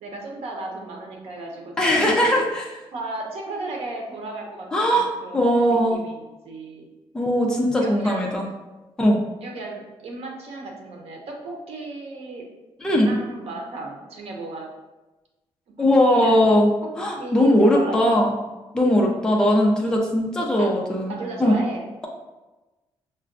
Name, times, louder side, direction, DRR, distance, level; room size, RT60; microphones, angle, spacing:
voice 1, 0.0-2.4 2.9-5.5 5.9-6.9 7.8-8.3 9.4-12.5 13.1-14.7 15.8-16.5 17.2-18.2 20.6-20.7 21.1-22.1, right 2 dB, 85° right, 0 dB, 0.8 m, -35 dB
voice 2, 1.8-2.6 4.7-5.1 5.3-6.0 7.1-8.5 9.0-9.2 12.8-13.2 15.8-16.7 17.0-18.3 18.7-21.6, equal, 5° left, -2 dB, 0.5 m, -19 dB
5.5 x 2.2 x 2.5 m, 1.1 s
wide cardioid pair, 155°, 10 cm